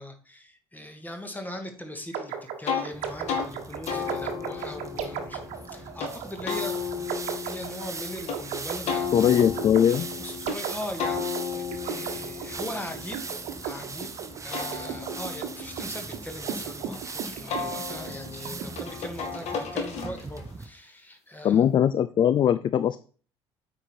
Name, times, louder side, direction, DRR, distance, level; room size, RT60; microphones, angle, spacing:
voice 1, 0.0-9.2 9.9-13.2 13.6-21.6, left 1 dB, 10° left, 5 dB, 1.8 m, -40 dB
sound 1, 2.1-18.8, right 8 dB, 55° right, 1.2 m, -36 dB
sound 2, 2.7-2.9 3.3-3.5 3.9-6.1 6.4-8.4 8.9-10.6 11.0-13.9 14.3-17.0 17.5-20.5, left 6 dB, 50° left, 1.8 m, -34 dB
sound 3, 2.9-20.7, right 4 dB, 20° right, 1.0 m, -40 dB
voice 2, 9.1-10.1 21.4-23.0, left 9 dB, 35° left, 15 dB, 0.4 m, -21 dB
8.6 x 5.1 x 4.4 m, 0.40 s
figure-of-eight pair, 55°, 14 cm